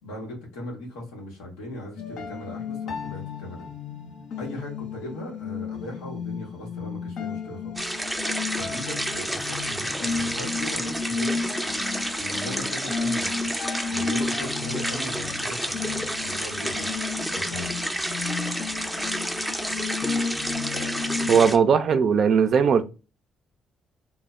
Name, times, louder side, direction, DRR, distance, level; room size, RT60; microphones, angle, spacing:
voice 1, 0.0-3.7 4.4-7.8 8.5-11.4 12.1-13.5 13.9-16.9 17.3-17.7, left 1 dB, 85° left, 0.9 m, -38 dB
sound 1, 2.0-21.4, left 5 dB, 70° left, 0.5 m, -33 dB
sound 2, 7.8-21.6, equal, 5° right, 0.5 m, -30 dB
voice 2, 21.3-22.9, right 6 dB, 60° right, 0.3 m, -19 dB
2.0 x 2.0 x 3.5 m
hypercardioid pair, 55°, 0 cm